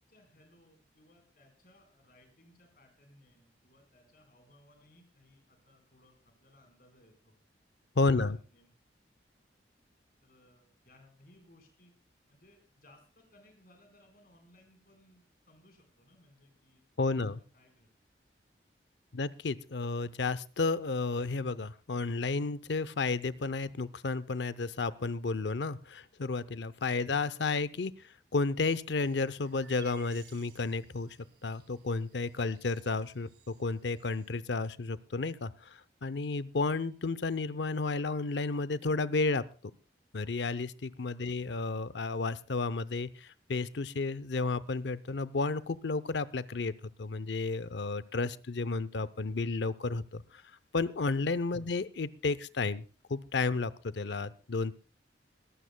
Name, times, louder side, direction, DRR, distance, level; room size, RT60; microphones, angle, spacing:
voice 1, 0.1-7.4 8.0-8.2 8.5-8.7 10.2-11.9 12.3-16.8 17.2-17.9 41.2-41.4 51.5-51.6, left 1 dB, 55° left, 4 dB, 4.2 m, -63 dB
voice 2, 8.0-8.4 17.0-17.4 19.1-27.9 28.3-31.2 31.4-39.4 40.1-46.7 47.0-50.2 50.7-52.8 53.1-54.7, left 3 dB, 75° left, 16 dB, 0.6 m, -32 dB
sound 1, 29.0-34.5, right 5 dB, 60° right, 2.3 m, -59 dB
21.5 x 15.0 x 2.2 m, 0.35 s
head